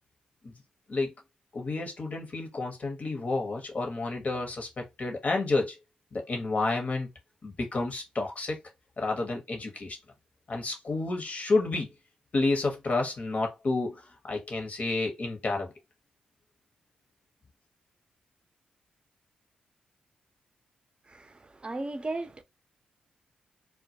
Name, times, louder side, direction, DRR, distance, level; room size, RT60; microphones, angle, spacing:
voice 1, 1.5-5.8 6.1-7.1 7.4-8.6 9.0-10.0 10.5-11.9 12.3-14.0 14.3-15.7, left 3 dB, 50° left, 0.9 m, -30 dB
voice 2, 21.6-22.4, right 2 dB, 30° right, 0.5 m, -35 dB
2.2 x 2.1 x 2.7 m
supercardioid pair, 45°, 3 cm